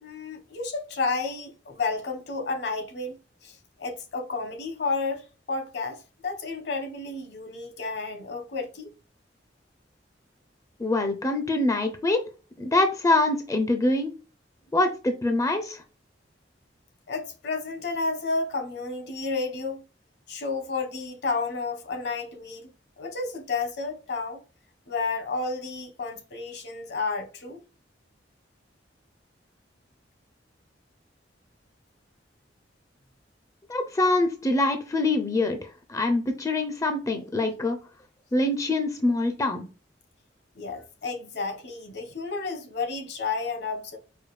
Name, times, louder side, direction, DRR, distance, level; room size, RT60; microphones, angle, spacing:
voice 1, 0.0-8.9 17.1-19.8 20.3-22.7 23.0-24.4 24.9-27.6 40.6-44.0, left 4 dB, 65° left, 1.0 m, -31 dB
voice 2, 10.8-12.2 12.6-14.1 14.7-15.8 33.7-37.8 38.3-39.7, left 2 dB, 20° left, 0.4 m, -24 dB
4.8 x 2.3 x 3.1 m
head